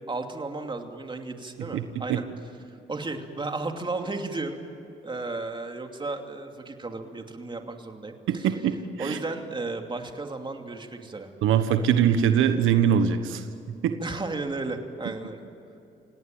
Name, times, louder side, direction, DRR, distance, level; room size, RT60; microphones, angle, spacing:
voice 1, 0.1-2.2 2.9-4.6 5.0-8.5 9.0-11.3 14.0-15.5, right 3 dB, 25° right, 4 dB, 2.7 m, -34 dB
voice 2, 8.3-9.2 11.4-13.4 13.8-14.0, right 8 dB, 85° right, 8 dB, 1.4 m, -22 dB
27.5 x 18.5 x 9.1 m, 2.7 s
cardioid pair, 90°, 20 cm